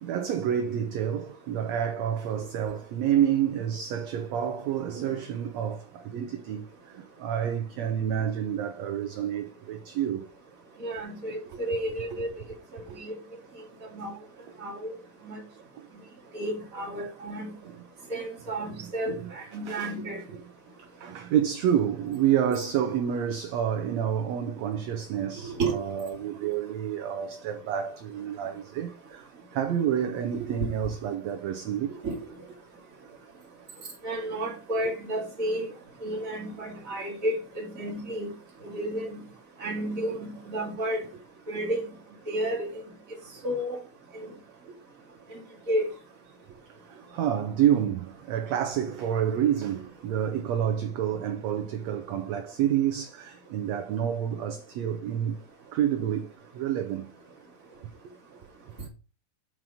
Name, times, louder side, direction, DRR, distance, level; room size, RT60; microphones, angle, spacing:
voice 1, 0.0-10.3 11.5-11.6 12.1-12.2 12.9-13.0 17.6-17.8 18.7-18.8 19.1-19.3 19.7-19.9 20.3-20.4 21.0-29.3 29.5-32.0 44.7-44.8 46.8-55.4 55.7-56.3 56.5-57.1, right 9 dB, 70° right, 1.7 m, -29 dB
voice 2, 10.8-12.3 12.7-13.1 13.9-14.1 14.6-14.9 15.2-15.4 16.3-17.5 18.1-20.2 25.4-25.8 30.6-30.7 32.0-32.2 34.0-35.7 36.0-38.3 38.6-39.2 39.6-41.0 41.5-41.8 42.3-42.8 43.4-43.8 44.1-44.3 45.3-45.4 45.7-45.8, right 1 dB, 25° right, 2.5 m, -31 dB
7.6 x 4.8 x 5.1 m
omnidirectional pair, 3.8 m